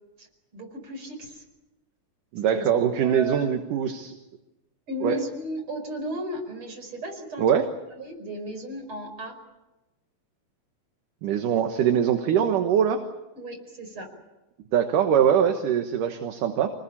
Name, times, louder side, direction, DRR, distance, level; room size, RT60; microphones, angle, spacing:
voice 1, 0.5-1.4 2.5-2.7 3.0-3.5 4.9-7.6 8.0-9.3 13.4-14.1, right 1 dB, 35° right, 4 dB, 5.7 m, -35 dB
voice 2, 2.3-4.1 5.0-5.2 7.4-7.6 11.2-13.0 14.7-16.7, right 8 dB, 65° right, 6 dB, 2.7 m, -22 dB
27.0 x 19.5 x 8.6 m, 1.0 s
omnidirectional pair, 4.2 m